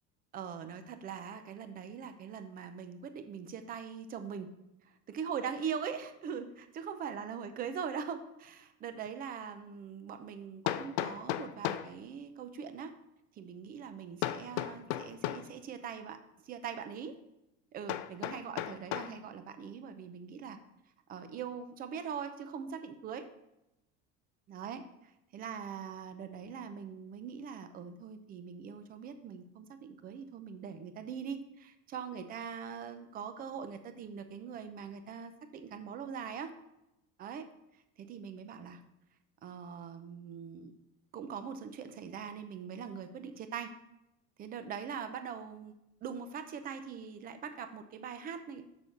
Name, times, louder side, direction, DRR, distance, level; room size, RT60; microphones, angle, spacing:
voice 1, 0.3-4.5 5.1-12.9 13.4-16.2 16.4-17.2 17.7-20.6 21.1-23.2 24.5-24.8 25.3-36.5 37.2-37.5 38.0-38.8 39.4-40.7 41.1-43.7 44.4-45.7 46.0-48.6, right 7 dB, 30° right, 9 dB, 0.7 m, -42 dB
Hammer, 9.1-9.2 10.7-11.9 14.2-15.5 17.9-19.2, left 13 dB, 80° left, 0.6 m, -35 dB
6.8 x 6.2 x 5.3 m, 0.88 s
cardioid pair, 160°, 29 cm